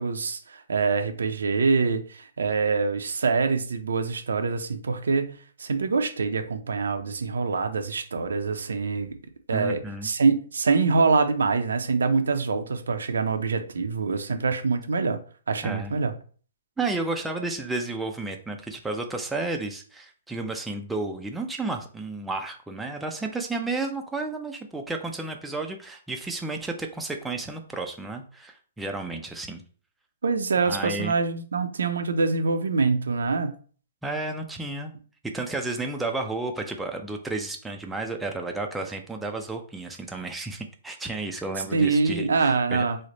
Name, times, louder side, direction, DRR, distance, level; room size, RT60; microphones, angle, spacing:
voice 1, 0.0-9.2 9.5-15.2 15.5-16.1 30.2-33.5 41.7-43.0, right 4 dB, 85° right, 0.5 m, -25 dB
voice 2, 9.5-10.1 15.6-15.9 16.8-29.6 30.7-31.1 34.0-34.9 35.3-42.8, right 3 dB, 5° right, 0.4 m, -32 dB
3.2 x 2.1 x 3.8 m
hypercardioid pair, 150°, 0 cm